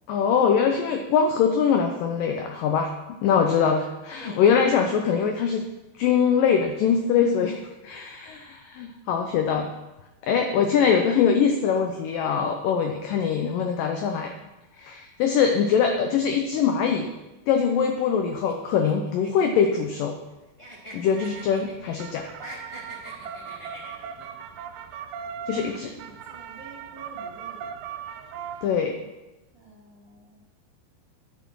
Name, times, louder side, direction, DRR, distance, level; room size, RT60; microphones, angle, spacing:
voice 1, 0.1-2.9 3.2-5.7 6.0-9.7 10.2-14.3 14.8-17.1 17.5-20.2 20.9-22.3 25.5-25.9 28.6-29.0, left 7 dB, 80° left, 4 dB, 1.9 m, -23 dB
sound 1, 18.4-20.3 20.6-22.0 22.3-24.3, equal, 15° left, 1.0 m, -44 dB
sound 2, 21.2-28.7, right 7 dB, 80° right, 2.4 m, -39 dB
voice 2, 25.5-27.7 29.5-30.4, right 3 dB, 30° right, -4 dB, 2.8 m, -47 dB
11.0 x 7.1 x 6.1 m, 1.0 s
omnidirectional pair, 4.8 m